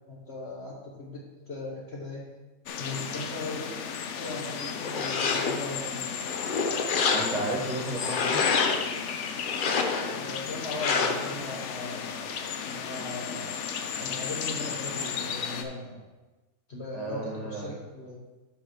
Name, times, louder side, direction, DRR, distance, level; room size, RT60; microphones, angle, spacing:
voice 1, 0.1-2.2 2.8-3.9 4.2-6.0 10.1-12.4 12.7-13.5 13.9-16.0 16.7-18.2, left 2 dB, 45° left, -3 dB, 1.2 m, -38 dB
sound 1, 2.7-15.6, left 7 dB, 60° left, 0.8 m, -34 dB
sound 2, 4.8-5.7 6.2-7.6 8.0-8.9 9.5-10.2 10.8-11.4, left 5 dB, 90° left, 0.4 m, -28 dB
voice 2, 7.1-8.4 16.9-17.7, right 2 dB, 25° right, -2 dB, 1.5 m, -33 dB
6.1 x 5.7 x 5.6 m, 1.2 s
omnidirectional pair, 1.8 m